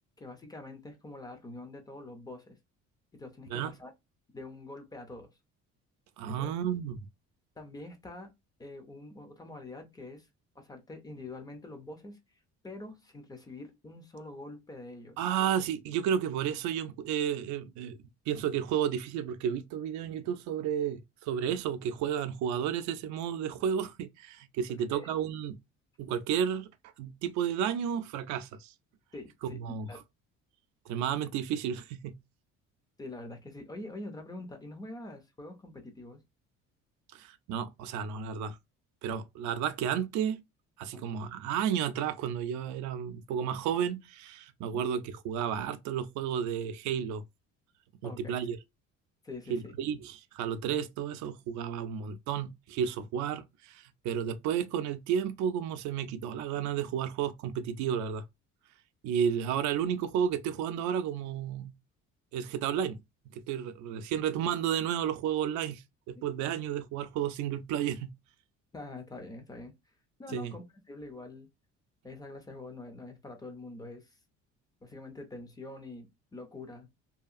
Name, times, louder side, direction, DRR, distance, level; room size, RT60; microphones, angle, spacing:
voice 1, 0.2-2.6 3.1-3.9 4.3-5.4 6.3-6.5 7.6-8.3 8.6-10.3 10.6-12.2 12.6-15.2 24.7-25.1 29.1-30.0 33.0-36.2 40.9-41.0 44.7-44.8 48.0-48.4 49.2-49.7 66.2-66.3 68.7-69.7 70.2-71.5 72.0-74.2 74.8-76.9, left 2 dB, 15° left, 0.4 m, -45 dB
voice 2, 6.2-7.0 15.2-18.0 18.3-25.6 26.0-26.7 27.0-28.7 29.4-29.9 30.9-32.2 37.1-38.6 39.0-40.4 40.8-47.2 48.0-48.6 49.5-58.3 59.0-61.7 62.3-63.0 63.3-68.2 70.3-70.5, right 8 dB, 75° right, 0.4 m, -32 dB
2.8 x 2.4 x 2.4 m
cardioid pair, 175°, 29 cm